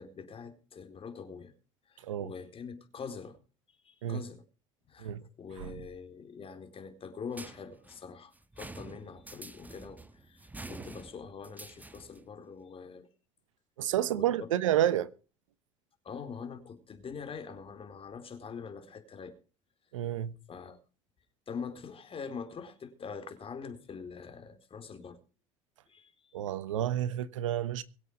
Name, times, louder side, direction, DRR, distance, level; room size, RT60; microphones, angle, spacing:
voice 1, 0.0-1.5 1.9-3.4 3.8-4.4 4.9-5.1 5.4-8.3 8.6-13.1 14.1-14.5 16.0-19.4 20.5-20.8 21.5-25.2 25.9-26.1, left 5 dB, 35° left, 4.2 m, -44 dB
sound 1, 7.3-12.3, right 2 dB, 10° right, 1.6 m, -47 dB
voice 2, 13.8-15.1 19.9-20.3 26.3-27.8, right 11 dB, 80° right, 1.1 m, -30 dB
23.5 x 8.1 x 5.3 m
hypercardioid pair, 75°, 16 cm